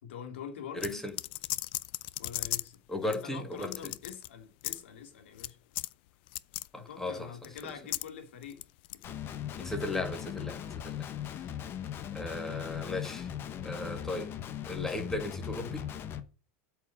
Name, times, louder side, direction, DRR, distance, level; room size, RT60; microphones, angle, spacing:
voice 1, 0.0-1.0 2.2-5.6 6.7-8.6 8.9-9.2, left 8 dB, 80° left, 2.3 m, -45 dB
voice 2, 0.7-1.1 2.9-3.7 6.7-7.3 7.6-7.7 9.6-11.1 12.1-13.3 13.6-14.3 14.7-15.9, left 2 dB, 5° left, 2.1 m, -36 dB
sound 1, 0.8-2.8 3.1-3.2 3.6-4.3 4.6-4.8 5.4-5.5 5.8-5.9 6.3-6.7 7.4-8.1 8.4-9.0, left 20 dB, 65° left, 0.5 m, -36 dB
Guitar, 9.0-16.2, left 9 dB, 35° left, 1.1 m, -39 dB
8.1 x 4.8 x 7.1 m
supercardioid pair, 115°, 6 cm